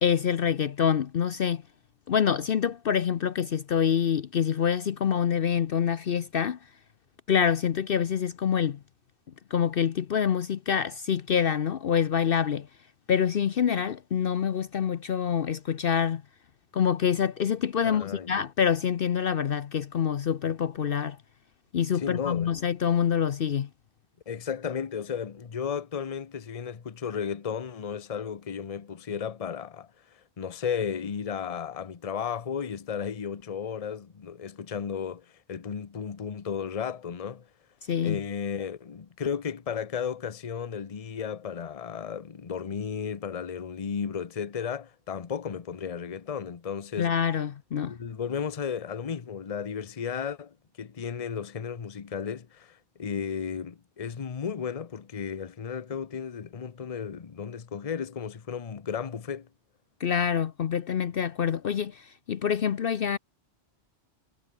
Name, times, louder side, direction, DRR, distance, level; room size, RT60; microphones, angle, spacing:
voice 1, 0.0-1.6 2.1-6.6 7.3-8.8 9.5-12.7 13.1-16.2 16.7-21.2 21.7-23.7 37.9-38.2 47.0-47.9 60.0-63.2, left 8 dB, 60° left, 0.9 m, -26 dB
voice 2, 17.8-18.4 21.9-22.5 24.3-29.9 30.4-37.5 38.0-47.1 47.9-59.5, left 7 dB, 35° left, 0.9 m, -34 dB
omnidirectional pair, 1.2 m